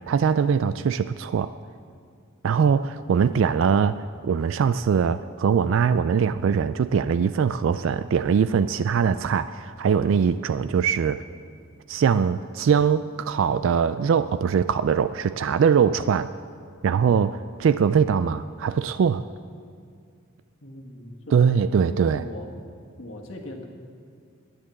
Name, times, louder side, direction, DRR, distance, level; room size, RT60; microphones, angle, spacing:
voice 1, 0.1-1.5 2.4-11.2 11.9-16.3 16.8-19.2 21.3-22.2, right 6 dB, 65° right, 13 dB, 0.3 m, -22 dB
voice 2, 20.6-21.5 21.9-22.5 23.0-23.7, left 1 dB, 65° left, 0 dB, 1.6 m, -40 dB
10.5 x 10.0 x 8.3 m, 2.2 s
head